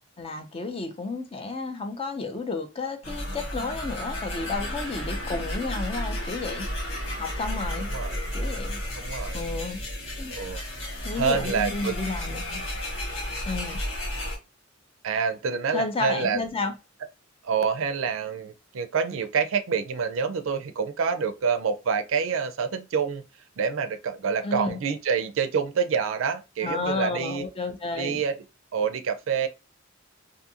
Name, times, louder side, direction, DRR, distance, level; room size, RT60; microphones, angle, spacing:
voice 1, 0.2-6.7 7.1-7.9 8.3-8.8 9.3-9.8 10.2-10.3 11.0-12.6 13.5-13.8 15.7-16.7 24.4-24.8 26.6-28.2, left 3 dB, 30° left, 0.5 m, -32 dB
sound 1, 3.0-14.4, left 1 dB, 80° left, 1.0 m, -32 dB
voice 2, 7.9-8.2 9.0-9.4 10.3-10.6 11.2-12.0 15.0-16.4 17.4-23.2 23.6-27.4 28.0-28.4 28.7-29.5, right 6 dB, 75° right, 0.4 m, -27 dB
2.6 x 2.4 x 2.7 m
head